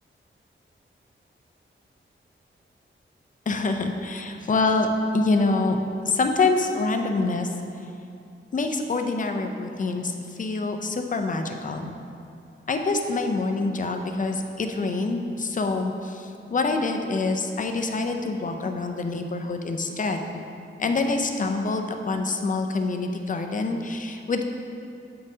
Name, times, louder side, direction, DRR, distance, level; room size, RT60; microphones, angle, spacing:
voice 1, 3.5-5.8 6.0-7.5 8.5-11.9 12.7-20.2 20.8-24.4, left 3 dB, 40° left, 5 dB, 0.5 m, -26 dB
7.6 x 5.3 x 2.7 m, 2.6 s
wide cardioid pair, 135°, 21 cm